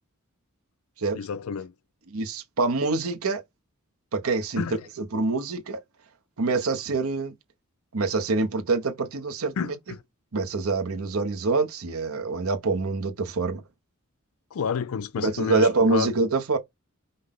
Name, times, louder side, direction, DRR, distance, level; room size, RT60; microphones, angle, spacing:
voice 1, 1.1-1.7 4.6-4.8 9.6-10.0 14.5-16.1, left 6 dB, 70° left, 0.4 m, -30 dB
voice 2, 2.1-3.4 4.1-4.6 5.1-5.8 6.4-7.3 7.9-9.5 10.3-13.6 15.2-16.6, right 3 dB, 70° right, 0.9 m, -25 dB
5.3 x 2.1 x 3.7 m
head